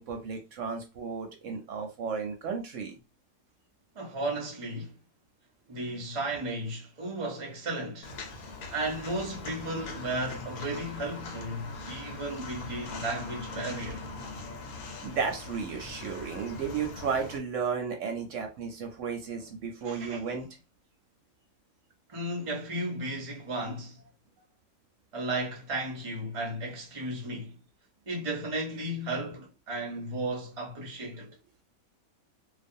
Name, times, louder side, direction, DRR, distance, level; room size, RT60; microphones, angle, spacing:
voice 1, 0.0-3.0 15.0-20.5, right 6 dB, 65° right, 0.8 m, -33 dB
voice 2, 3.9-4.9 5.7-8.1 8.7-14.0 19.8-20.2 22.1-24.0 25.1-27.6 28.1-31.3, right 1 dB, 40° right, 0.5 m, -34 dB
Walk footsteps, 8.0-17.4, left 3 dB, 85° left, 1.1 m, -41 dB
2.4 x 2.3 x 2.6 m
omnidirectional pair, 1.5 m